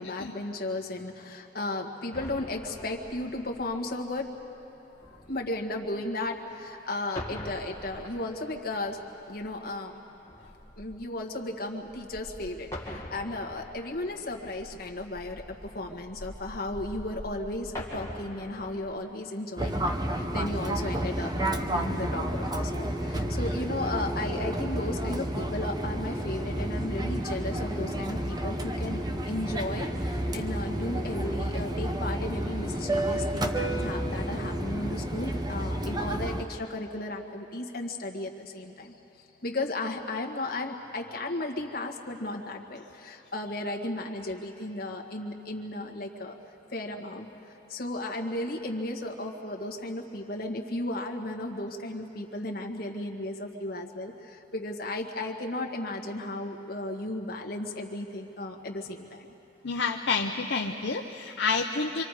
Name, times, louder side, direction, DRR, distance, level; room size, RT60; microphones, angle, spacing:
voice 1, 0.0-4.4 5.3-9.0 9.3-9.9 10.8-46.3 46.7-47.3 47.7-59.3, left 2 dB, 55° left, 1 dB, 1.6 m, -35 dB
sound 1, 2.1-6.7 7.0-19.0, left 1 dB, 15° left, 2.0 m, -44 dB
Fixed-wing aircraft airplane, 19.6-36.4, right 1 dB, 20° right, 0.9 m, -31 dB
voice 2, 59.6-62.0, left 4 dB, 70° left, 2 dB, 0.7 m, -29 dB
26.0 x 25.5 x 4.9 m, 3.0 s
head